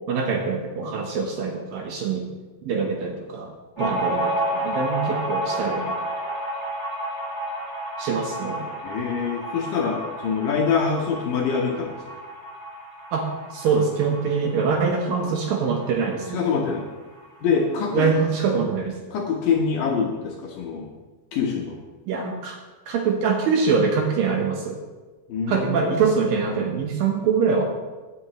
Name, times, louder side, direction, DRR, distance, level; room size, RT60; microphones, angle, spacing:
voice 1, 0.1-2.3 2.6-3.5 3.8-6.0 8.0-8.7 13.1-16.4 17.9-18.9 22.1-22.6 22.9-24.8 25.5-27.6, right 5 dB, 70° right, 2 dB, 2.4 m, -24 dB
sound 1, 3.8-16.9 17.2-17.3 17.6-18.3, right 1 dB, 20° right, 2.9 m, -31 dB
voice 2, 8.8-12.0 16.3-16.8 17.4-18.1 19.1-21.0 21.3-21.8 25.3-26.0, left 5 dB, 70° left, 0 dB, 2.3 m, -25 dB
16.5 x 10.0 x 3.0 m, 1.2 s
omnidirectional pair, 4.9 m